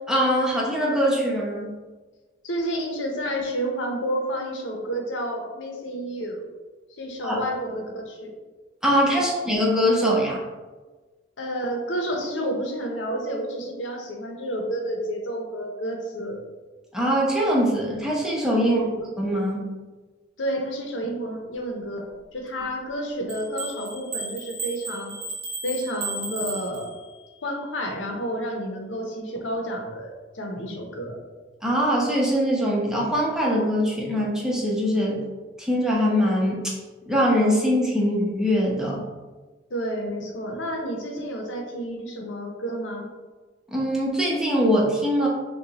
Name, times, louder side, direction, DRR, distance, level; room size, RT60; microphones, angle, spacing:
voice 1, 0.1-1.7 7.2-7.4 8.8-10.4 16.9-18.8 19.2-19.7 31.6-35.2 35.6-36.7 37.1-39.0 43.7-45.3, equal, 5° right, -4 dB, 0.9 m, -22 dB
voice 2, 2.4-6.5 6.9-8.3 9.1-9.3 11.4-16.4 18.6-19.0 20.4-25.2 25.6-26.9 27.4-31.2 39.7-43.1, equal, 85° left, 2 dB, 0.8 m, -30 dB
sound 1, 23.3-27.3, right 3 dB, 30° right, 1.0 m, -34 dB
6.6 x 2.3 x 2.9 m, 1.3 s
head